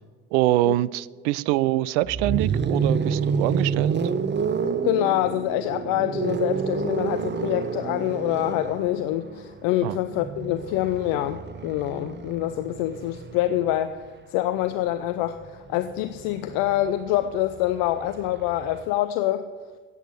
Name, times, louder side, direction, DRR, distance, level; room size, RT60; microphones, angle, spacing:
voice 1, 0.3-4.0 9.8-10.0, right 16 dB, 65° right, 21 dB, 0.5 m, -24 dB
sound 1, 2.0-14.0 15.3-18.9, right 6 dB, 30° right, 0.8 m, -29 dB
voice 2, 4.8-14.0 14.3-19.4, left 13 dB, 60° left, 11 dB, 0.6 m, -26 dB
17.5 x 8.3 x 5.6 m, 1.5 s
figure-of-eight pair, 50°, 39 cm